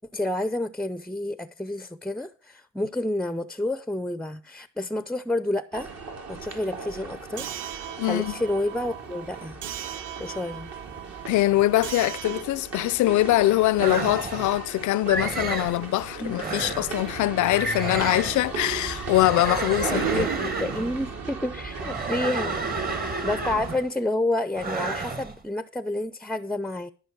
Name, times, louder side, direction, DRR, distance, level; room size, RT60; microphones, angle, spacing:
voice 1, 0.1-5.9 6.3-9.6 10.2-10.7 16.2-16.4 19.8-22.6 23.2-26.9, left 1 dB, 5° left, 0.5 m, -29 dB
sound 1, 5.7-23.8, right 5 dB, 60° right, 2.8 m, -36 dB
sound 2, 7.4-12.4, right 11 dB, 85° right, 0.6 m, -39 dB
voice 2, 8.0-8.3 11.3-20.3, left 16 dB, 75° left, 0.5 m, -23 dB
sound 3, 13.8-14.6 15.1-15.8 16.3-17.0 17.5-18.5 19.0-21.0 21.7-23.9 24.5-25.3, right 3 dB, 30° right, 1.4 m, -31 dB
13.5 x 6.0 x 6.1 m
cardioid pair, 90°, 30 cm